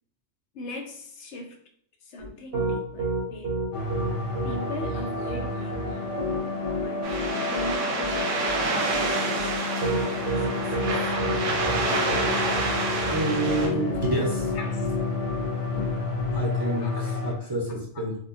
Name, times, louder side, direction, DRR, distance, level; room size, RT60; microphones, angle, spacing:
voice 1, 0.5-1.6 2.0-3.7 4.4-6.0 6.8-7.1 7.5-9.5 10.2-11.3 14.6-15.0 15.8-15.9 16.8-18.0, left 2 dB, 70° left, 3 dB, 0.9 m, -40 dB
Piano, 2.2-16.4, right 1 dB, 50° right, 1.2 m, -30 dB
sound 1, 3.7-17.3, left 3 dB, 50° left, 0.3 m, -31 dB
sound 2, 7.0-13.7, right 3 dB, 85° right, 1.1 m, -28 dB
voice 2, 13.1-14.6 16.3-18.2, right 2 dB, 25° right, -4 dB, 0.7 m, -28 dB
4.1 x 2.3 x 2.6 m, 0.65 s
omnidirectional pair, 1.3 m